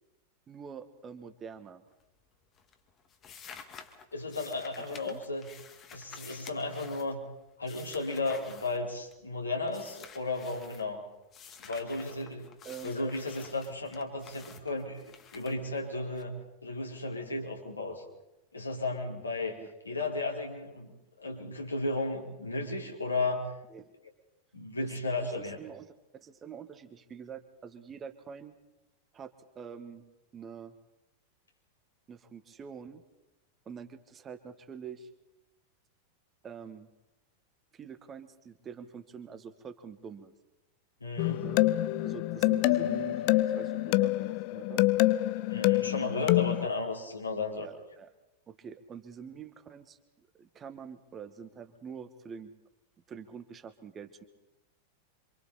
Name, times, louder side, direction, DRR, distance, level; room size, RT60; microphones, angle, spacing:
voice 1, 0.5-1.8 4.9-5.2 12.6-13.0 19.6-19.7 23.7-24.0 24.8-24.9 25.2-28.5 29.1-30.0 30.3-30.7 32.1-33.0 33.7-35.1 36.4-36.9 37.7-40.3 41.4-41.6 42.0-44.8 47.6-48.1 48.5-52.5 53.1-54.2, right 7 dB, 25° right, 8 dB, 1.9 m, -46 dB
sound 1, 1.9-2.3 2.6-9.3 9.7-10.9 11.3-16.2, left 6 dB, 30° left, 2.2 m, -51 dB
voice 2, 4.1-5.5 5.9-7.2 7.6-11.0 11.6-12.5 12.8-15.0 15.3-16.3 16.6-18.0 18.5-19.6 19.8-23.4 24.5-25.6 41.0-41.5 45.5-47.7, left 2 dB, 80° left, -1 dB, 4.9 m, -34 dB
sound 2, 41.2-46.7, left 18 dB, 45° left, 0.7 m, -26 dB
27.5 x 26.0 x 4.4 m, 0.95 s
figure-of-eight pair, 90°, 0 cm